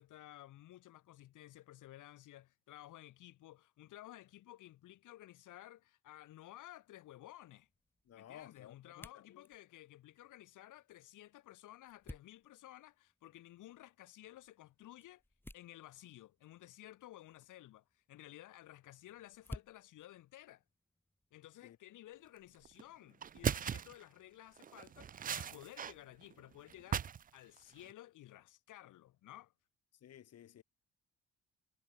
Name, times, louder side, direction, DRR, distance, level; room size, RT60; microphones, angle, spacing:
voice 1, 0.0-7.7 8.1-15.2 15.5-20.6 21.3-29.5, left 14 dB, 85° left, 7.1 m, -55 dB
sound 1, 6.5-21.4, left 1 dB, 5° left, 3.0 m, -58 dB
voice 2, 8.1-9.5 21.6-21.8 30.0-30.6, left 10 dB, 55° left, 1.3 m, -56 dB
sound 2, 22.6-22.8 23.2-24.0 24.6-25.9 26.2-27.3 27.6-27.9, right 8 dB, 30° right, 0.4 m, -38 dB
cardioid pair, 90°, 30 cm